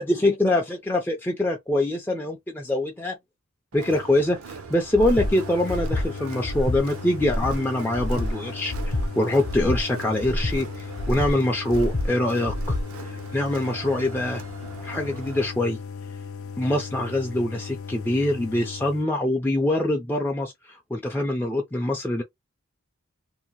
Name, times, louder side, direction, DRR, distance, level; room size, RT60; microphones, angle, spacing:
voice 1, 0.0-3.2 3.7-14.4 14.8-15.8 16.6-22.2, left 1 dB, 10° left, 0.3 m, -24 dB
Crowd, 3.7-15.5, right 5 dB, 85° right, 0.6 m, -41 dB
Breathing, 4.9-5.3 5.7-6.0 6.4-6.8 7.2-7.5 7.9-8.3 8.7-9.0 9.4-9.8 10.2-10.6 10.9-11.3 11.7-12.1 12.4-12.8, left 1 dB, 50° left, 0.8 m, -27 dB
sound 1, 5.1-19.0, left 5 dB, 80° left, 0.5 m, -37 dB
2.7 x 2.1 x 2.9 m
head